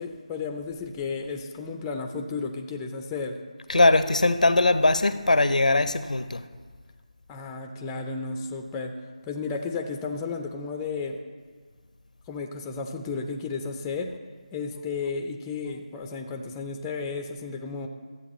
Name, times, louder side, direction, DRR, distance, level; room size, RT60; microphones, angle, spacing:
voice 1, 0.0-3.4 7.3-9.0 9.3-11.2 12.3-14.1 14.5-17.9, left 4 dB, 10° left, 4 dB, 0.4 m, -33 dB
voice 2, 3.7-6.4, left 2 dB, 85° left, 11 dB, 0.6 m, -20 dB
13.0 x 7.9 x 3.1 m, 1.5 s
figure-of-eight pair, 160°, 4 cm